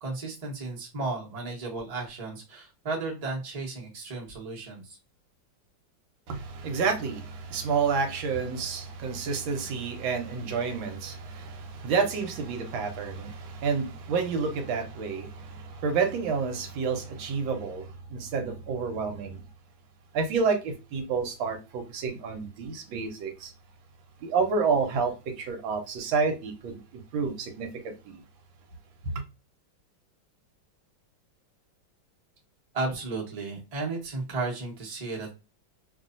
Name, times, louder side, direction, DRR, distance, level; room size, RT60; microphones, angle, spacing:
voice 1, 0.0-5.0 32.7-35.3, right 3 dB, 30° right, 0.7 m, -34 dB
voice 2, 6.3-19.4 20.1-23.5 24.2-26.8 27.1-28.2, right 5 dB, 80° right, 1.4 m, -29 dB
3.0 x 2.7 x 2.5 m
omnidirectional pair, 2.2 m